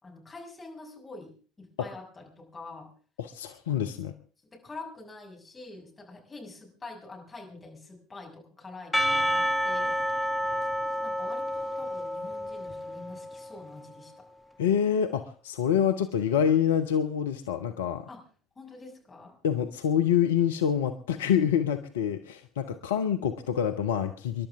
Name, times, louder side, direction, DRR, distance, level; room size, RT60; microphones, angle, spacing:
voice 1, 0.0-2.9 4.4-10.0 11.0-14.2 18.1-18.2 18.6-19.4, left 3 dB, 20° left, 0 dB, 6.1 m, -46 dB
voice 2, 3.2-4.1 14.6-18.1 19.4-24.5, left 8 dB, 70° left, 8 dB, 0.8 m, -26 dB
Percussion / Church bell, 8.9-13.5, equal, 5° left, 1.3 m, -29 dB
27.5 x 11.5 x 3.5 m, 0.41 s
figure-of-eight pair, 60°, 0 cm